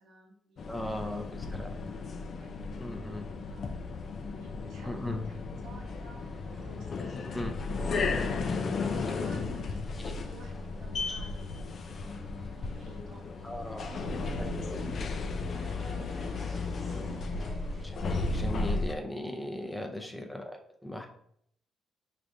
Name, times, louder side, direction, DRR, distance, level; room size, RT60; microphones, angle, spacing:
voice 1, 0.0-0.7 1.0-1.8 2.4-3.6 4.2-9.8 10.1-13.2 13.8-15.4 15.7-16.5 19.9-20.3, right 1 dB, 80° right, -2 dB, 1.3 m, -52 dB
sound 1, 0.6-18.9, left 3 dB, 50° left, 0.4 m, -34 dB
voice 2, 0.7-1.2 1.5-1.8 2.8-3.3 4.8-5.2 7.3-7.5 10.0-10.1 13.4-13.9 14.4-14.8 17.8-21.1, left 1 dB, 5° left, 3 dB, 0.6 m, -38 dB
sound 2, 6.2-17.8, right 1 dB, 35° right, 1.2 m, -55 dB
4.7 x 3.3 x 2.6 m, 0.68 s
cardioid pair, 90°, 0 cm